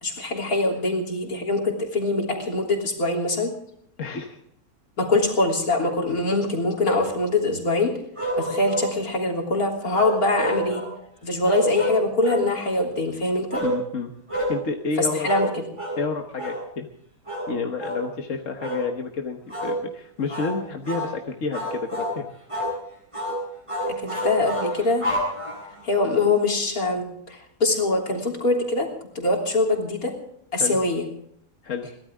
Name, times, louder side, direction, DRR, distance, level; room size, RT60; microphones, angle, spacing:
voice 1, 0.0-3.5 5.0-7.9 8.4-10.8 11.2-13.6 15.0-15.6 23.9-25.1 25.8-28.9 29.2-30.1 30.5-31.0, left 2 dB, 75° left, 0 dB, 3.8 m, -23 dB
voice 2, 4.0-4.4 13.6-14.1 14.5-15.3 16.0-16.9 17.5-22.3 30.6-30.8 31.6-31.9, left 4 dB, 60° left, 3 dB, 1.6 m, -29 dB
sound 1, 8.2-8.9 9.9-10.9 11.4-12.5 13.5-13.8 14.3-14.6 15.2-15.5 15.8-16.0 16.4-16.6 17.3-17.5 17.8-18.0 18.6-18.9 19.5-19.8 20.3-20.5 20.9-21.1 21.5-22.2 22.5-22.8 23.1-23.4 23.7-25.8, equal, 20° right, 8.1 m, -28 dB
23.0 x 17.5 x 3.6 m, 0.69 s
omnidirectional pair, 1.6 m